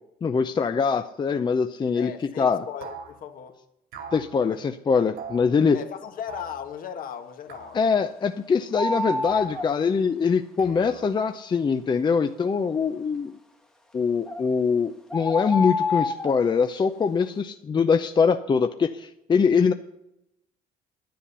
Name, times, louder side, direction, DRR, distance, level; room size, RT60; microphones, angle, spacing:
voice 1, 0.2-2.1 2.4-2.6 4.1-5.8 7.7-13.3 13.9-19.7, left 5 dB, 25° left, 0.6 m, -23 dB
voice 2, 1.9-3.6 4.5-4.6 5.7-7.8, left 8 dB, 55° left, 1.4 m, -37 dB
sound 1, 2.8-3.1 3.9-4.3 5.2-5.5 6.3-6.6 7.5-7.8 9.2-9.7 10.6-11.3, right 6 dB, 80° right, 2.6 m, -41 dB
sound 2, 8.7-9.7 14.3-14.4 15.1-16.4, left 3 dB, 5° left, 1.2 m, -27 dB
10.5 x 9.8 x 6.8 m
cardioid pair, 110°, 17 cm